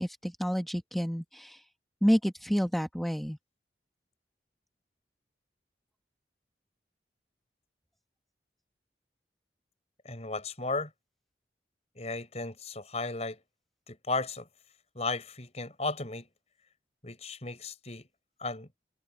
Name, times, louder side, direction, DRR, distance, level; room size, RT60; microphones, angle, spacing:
voice 1, 0.0-1.6 2.0-3.4, equal, ahead, 1.5 m, -29 dB
voice 2, 10.0-10.9 12.0-13.4 13.9-14.5 14.9-16.3 17.0-18.1 18.4-18.7, left 3 dB, 35° left, 6.1 m, -35 dB
head